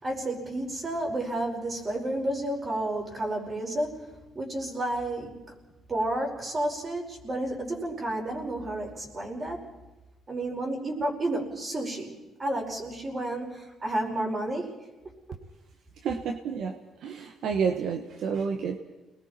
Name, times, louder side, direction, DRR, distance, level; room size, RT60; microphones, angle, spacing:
voice 1, 0.0-4.1 4.3-5.3 5.9-9.7 10.3-12.1 12.4-14.7, right 1 dB, 35° right, 0 dB, 5.1 m, -31 dB
voice 2, 16.0-16.8 17.0-18.8, right 6 dB, 75° right, 5 dB, 1.2 m, -29 dB
30.0 x 20.5 x 4.4 m, 1.1 s
cardioid pair, 90°, 0 cm